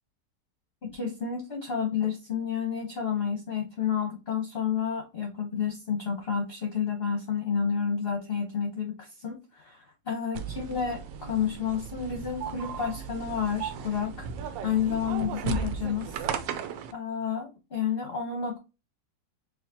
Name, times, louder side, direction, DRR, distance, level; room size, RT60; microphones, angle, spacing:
voice 1, 0.8-16.2 16.9-18.6, left 7 dB, 40° left, 1 dB, 1.1 m, -30 dB
sound 1, 10.3-16.9, right 6 dB, 90° right, 1.3 m, -35 dB
4.9 x 2.9 x 2.8 m, 0.27 s
omnidirectional pair, 1.9 m